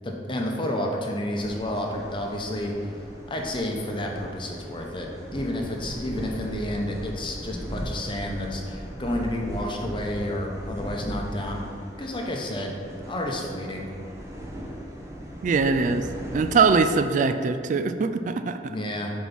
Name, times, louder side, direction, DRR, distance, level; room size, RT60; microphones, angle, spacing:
voice 1, 0.0-2.9 3.3-11.6 12.0-12.8 13.1-13.9 18.7-19.1, left 1 dB, 30° left, 0 dB, 0.9 m, -30 dB
sound 1, 1.3-16.9, equal, 15° right, 0.8 m, -38 dB
voice 2, 15.4-16.0 16.3-18.7, right 4 dB, 45° right, 9 dB, 0.3 m, -22 dB
5.9 x 4.6 x 5.3 m, 2.2 s
head